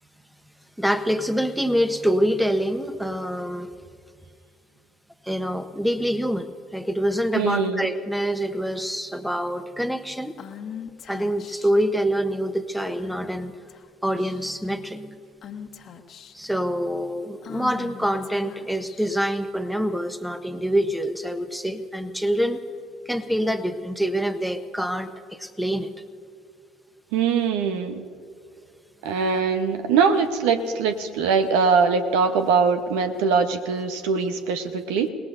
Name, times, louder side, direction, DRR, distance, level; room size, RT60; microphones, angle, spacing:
voice 1, 0.8-3.7 5.3-10.4 11.1-13.5 14.0-15.2 16.3-22.6 23.1-25.1 25.4-25.9, equal, ahead, 10 dB, 1.1 m, -25 dB
voice 2, 7.3-7.9 27.1-28.0 29.0-35.1, right 5 dB, 75° right, 8 dB, 0.9 m, -22 dB
Female speech woman speaking / Whispering, 10.4-11.8 12.9-13.3 13.7-13.9 14.2-14.7 15.4-16.5 17.4-19.4, left 8 dB, 50° left, 1.3 m, -41 dB
29.0 x 18.5 x 2.7 m, 2.2 s
hypercardioid pair, 60°, 0 cm